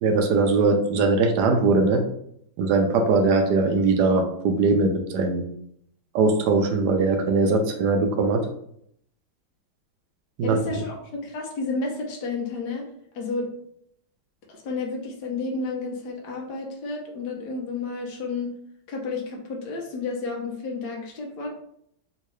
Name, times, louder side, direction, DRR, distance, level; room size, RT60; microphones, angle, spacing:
voice 1, 0.0-2.0 2.6-5.4 6.1-8.5 10.4-10.8, right 3 dB, 75° right, 5 dB, 1.0 m, -21 dB
voice 2, 10.4-10.9 11.2-12.8 13.1-13.5 14.5-18.5 18.9-21.5, left 3 dB, 65° left, -1 dB, 1.1 m, -31 dB
3.6 x 2.7 x 3.1 m, 0.71 s
omnidirectional pair, 2.2 m